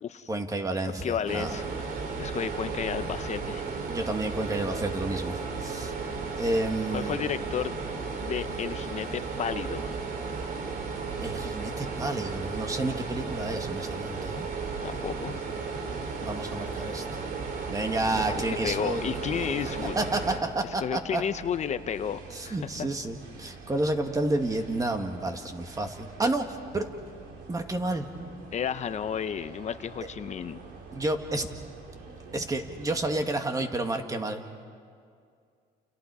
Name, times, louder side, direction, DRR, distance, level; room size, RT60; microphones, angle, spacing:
voice 1, 0.3-1.6 3.9-5.9 6.4-7.2 11.2-14.5 16.2-17.2 17.7-19.0 20.0-21.2 22.3-26.9 27.5-28.1 30.9-31.5 32.3-34.4, right 2 dB, 20° right, 5 dB, 2.0 m, -30 dB
voice 2, 1.0-1.9 2.2-3.6 6.9-7.7 8.2-10.0 14.8-15.4 18.1-20.0 20.8-22.6 28.5-30.6, left 8 dB, 40° left, 12 dB, 0.8 m, -32 dB
sound 1, 1.3-20.4, right 4 dB, 65° right, 3.0 m, -34 dB
King's Cross staion platform atmos, 18.5-33.2, right 4 dB, 80° right, 3.8 m, -47 dB
30.0 x 29.0 x 4.9 m, 2.2 s
cardioid pair, 110°, 17 cm